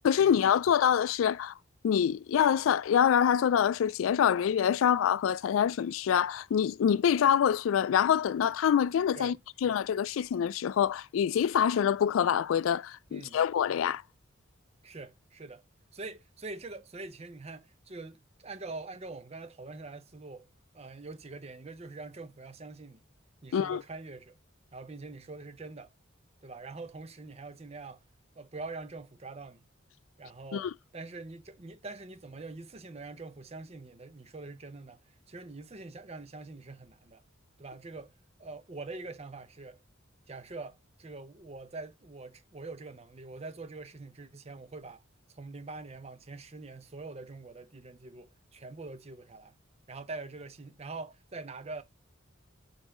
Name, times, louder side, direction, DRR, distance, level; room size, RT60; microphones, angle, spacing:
voice 1, 0.0-1.5 1.8-9.4 9.6-14.0 23.5-23.8 30.5-30.7, left 8 dB, 80° left, 0.3 m, -25 dB
voice 2, 14.8-15.6 15.9-20.4 20.7-23.0 23.4-24.4 24.7-25.9 26.4-28.0 28.4-29.7 30.2-37.2 37.6-38.1 38.4-39.8 40.3-45.0 45.3-49.6 49.9-51.8, right 3 dB, 30° right, 0.7 m, -44 dB
5.4 x 4.1 x 5.8 m
head